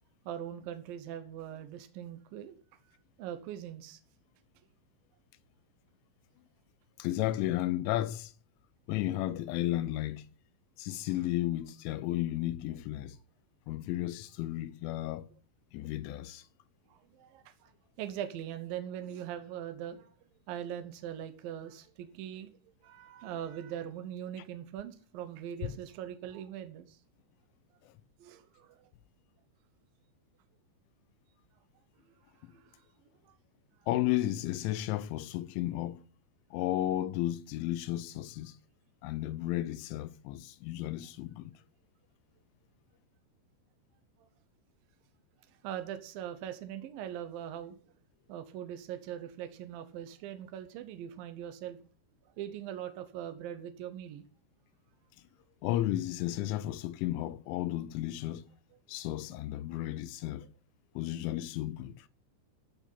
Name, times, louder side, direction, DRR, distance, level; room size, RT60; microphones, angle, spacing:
voice 1, 0.3-2.6 3.2-4.0 16.9-17.7 18.0-22.5 22.8-27.0 28.2-28.9 32.5-32.8 33.2-33.3 44.2-44.3 45.6-47.8 48.3-51.8 52.4-54.2, right 10 dB, 80° right, 2.1 m, -41 dB
voice 2, 7.0-8.3 8.9-10.2 10.8-13.2 13.7-15.3 15.7-16.5 25.6-25.8 33.9-36.0 36.5-38.6 39.0-41.5 55.6-58.4 58.9-60.5 61.0-62.1, left 14 dB, 85° left, 3.1 m, -33 dB
14.0 x 6.2 x 8.4 m
omnidirectional pair, 5.4 m